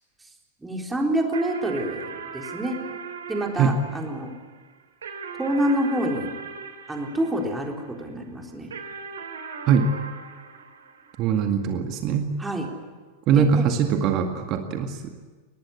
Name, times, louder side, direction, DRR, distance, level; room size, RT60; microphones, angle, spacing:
voice 1, 0.6-2.8 3.3-4.3 5.4-6.3 6.9-8.7 12.4-12.7 13.3-13.5, right 1 dB, 10° right, 1 dB, 4.0 m, -27 dB
sound 1, 1.3-8.0 8.7-11.5, right 5 dB, 65° right, 2.9 m, -39 dB
voice 2, 11.2-12.3 13.3-15.2, right 6 dB, 40° right, 5 dB, 2.0 m, -22 dB
23.5 x 19.0 x 9.8 m, 1.4 s
figure-of-eight pair, 90°, 0 cm